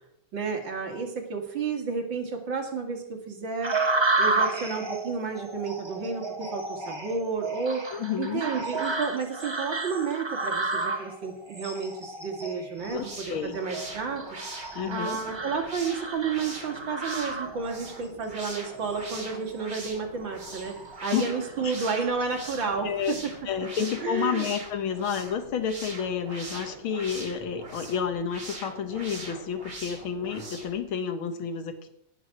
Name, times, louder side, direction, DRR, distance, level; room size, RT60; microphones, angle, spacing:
voice 1, 0.3-3.9 4.2-14.4 14.9-23.3 24.0-24.5, right 5 dB, 65° right, 2 dB, 2.8 m, -31 dB
sound 1, 3.6-17.9 18.4-19.0 19.5-19.8 20.3-21.0 21.4-22.6, right 3 dB, 20° right, 0.8 m, -32 dB
voice 2, 7.9-8.4 12.9-13.6 14.7-15.2 21.1-21.2 21.6-21.7 22.8-23.2 23.5-31.9, left 7 dB, 75° left, 8 dB, 2.1 m, -30 dB
sound 2, 12.8-30.8, right 2 dB, 35° right, 3.2 m, -42 dB
18.0 x 6.2 x 6.1 m, 0.80 s
omnidirectional pair, 2.3 m